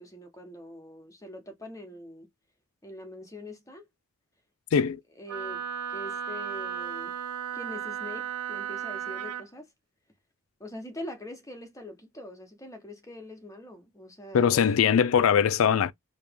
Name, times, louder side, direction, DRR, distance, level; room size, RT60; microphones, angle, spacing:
voice 1, 0.0-2.3 2.8-3.9 5.2-7.2 7.5-9.7 10.6-14.7, left 1 dB, 15° left, 1.0 m, -43 dB
Wind instrument woodwind instrument, 5.3-9.5, right 8 dB, 90° right, 0.5 m, -35 dB
voice 2, 14.3-15.9, left 7 dB, 65° left, 0.4 m, -21 dB
3.1 x 2.8 x 3.5 m
head